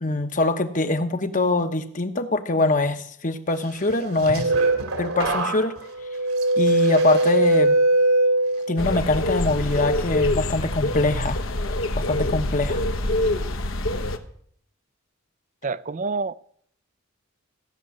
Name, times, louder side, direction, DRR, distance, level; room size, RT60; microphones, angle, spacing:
voice 1, 0.0-4.5 5.0-5.8 6.6-7.8 8.7-11.4 11.9-12.8, left 2 dB, 35° left, 1.1 m, -23 dB
sound 1, 3.9-8.9 9.3-9.8, right 2 dB, 85° right, 2.7 m, -21 dB
sound 2, 8.8-14.2, left 1 dB, 65° left, 1.2 m, -25 dB
voice 2, 15.6-16.3, right 4 dB, 35° right, 0.5 m, -27 dB
16.5 x 6.9 x 9.5 m
head